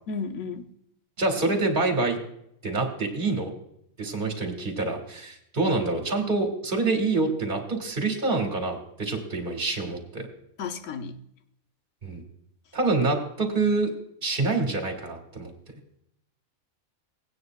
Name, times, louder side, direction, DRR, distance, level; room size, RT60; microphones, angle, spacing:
voice 1, 0.1-0.7 10.6-11.2, left 5 dB, 65° left, 7 dB, 1.1 m, -33 dB
voice 2, 1.2-2.2 2.6-3.5 4.0-10.3 12.0-12.2 12.7-13.9 14.2-15.5, right 3 dB, 40° right, 2 dB, 2.0 m, -26 dB
17.5 x 9.6 x 2.3 m, 0.76 s
omnidirectional pair, 1.4 m